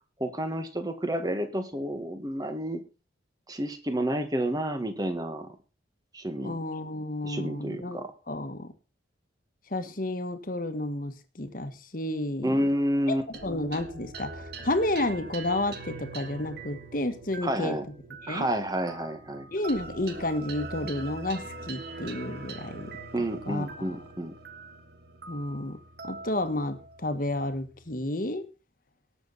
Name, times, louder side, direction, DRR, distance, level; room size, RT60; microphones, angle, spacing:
voice 1, 0.2-2.8 3.5-5.5 6.1-6.6 7.2-8.1 12.4-13.3 17.4-17.9 18.3-19.5 23.1-24.3, right 1 dB, 20° right, 1.6 m, -30 dB
voice 2, 6.4-8.7 9.7-12.6 13.4-17.8 18.2-18.5 19.5-23.0 23.5-24.0 25.3-25.8 26.0-28.4, left 1 dB, 45° left, 1.5 m, -31 dB
sound 1, 13.3-28.0, right 3 dB, 55° right, 1.5 m, -43 dB
18.5 x 7.1 x 4.1 m
head